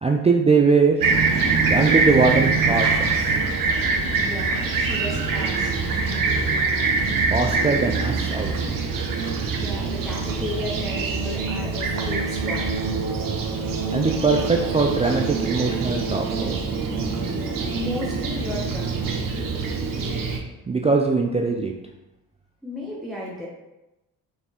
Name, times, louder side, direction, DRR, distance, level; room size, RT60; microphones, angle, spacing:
voice 1, 0.0-1.0 1.7-3.4 7.3-8.8 13.9-16.8 20.7-21.7, right 4 dB, 15° right, 1 dB, 0.4 m, -21 dB
Fixed-wing aircraft airplane, 1.0-20.4, right 4 dB, 50° right, 1.0 m, -24 dB
voice 2, 4.2-5.7 9.5-12.7 17.7-19.1 22.6-23.5, left 1 dB, ahead, -5 dB, 1.1 m, -34 dB
4.2 x 3.4 x 3.6 m, 0.98 s
supercardioid pair, 65°, 42 cm